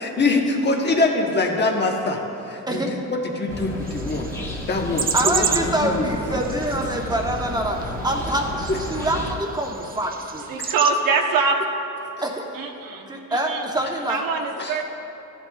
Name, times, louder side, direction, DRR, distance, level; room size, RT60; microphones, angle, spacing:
voice 1, 0.0-2.2 2.5-4.3 4.7-6.0 10.6-10.7 14.6-14.8, left 3 dB, 30° left, 1 dB, 1.2 m, -24 dB
sound 1, 3.5-9.3, equal, 10° left, 1.2 m, -32 dB
sound 2, 3.8-10.9, right 6 dB, 25° right, 0.4 m, -31 dB
voice 2, 5.1-10.5 12.2-12.5 13.1-14.2, right 1 dB, 10° right, 0 dB, 1.1 m, -25 dB
voice 3, 10.5-11.6 12.5-13.6 14.1-14.8, right 4 dB, 75° right, 2 dB, 1.1 m, -23 dB
14.5 x 10.5 x 2.4 m, 2.9 s
cardioid pair, 110°, 34 cm